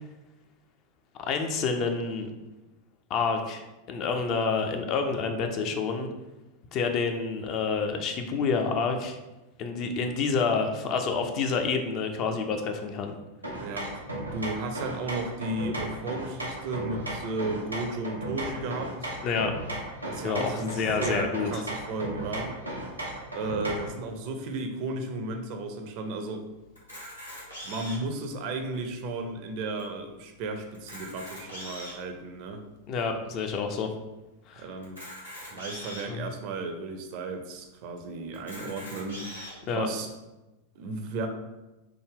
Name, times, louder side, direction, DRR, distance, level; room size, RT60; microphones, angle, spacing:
voice 1, 1.2-2.3 3.1-6.1 6.7-9.2 9.6-13.1 19.2-19.5 20.2-21.6 32.9-33.9 34.5-34.7 36.1-36.3 39.7-39.9, left 5 dB, 35° left, 5 dB, 0.4 m, -28 dB
sound 1, 13.4-24.0, right 1 dB, 85° right, 0.6 m, -36 dB
voice 2, 13.6-13.9 14.3-19.1 20.0-22.6 23.3-26.4 27.6-32.6 34.6-35.0 35.5-39.3 39.7-40.1 40.8-41.3, right 2 dB, 45° right, 5 dB, 0.4 m, -34 dB
Camera, 26.8-28.1 28.8-28.9 29.1-29.2 29.8-29.9 30.7-32.1 32.7-32.8 34.8-36.1 36.8-36.9 37.1-37.2 38.3-39.5, equal, 85° left, 1.0 m, -41 dB
3.3 x 2.0 x 3.5 m, 1.0 s
figure-of-eight pair, 90°, 0 cm